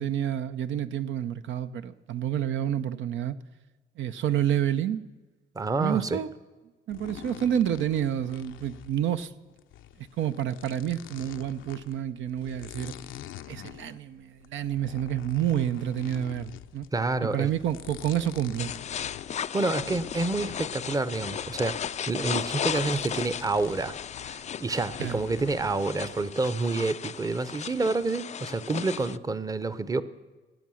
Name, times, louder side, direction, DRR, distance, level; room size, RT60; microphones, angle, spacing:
voice 1, 0.0-3.4 4.0-5.0 5.8-6.3 6.9-9.3 10.0-12.9 13.5-16.9 17.2-18.7 25.0-25.2, right 10 dB, 75° right, 11 dB, 0.6 m, -29 dB
voice 2, 5.6-6.2 16.9-17.5 19.5-24.0 24.2-30.0, right 3 dB, 20° right, 15 dB, 0.7 m, -28 dB
sound 1, 6.9-25.7, left 12 dB, 80° left, 0.6 m, -46 dB
sound 2, 18.6-29.2, left 8 dB, 35° left, 0.3 m, -35 dB
18.0 x 8.3 x 6.3 m, 1.2 s
cardioid pair, 90°, 20 cm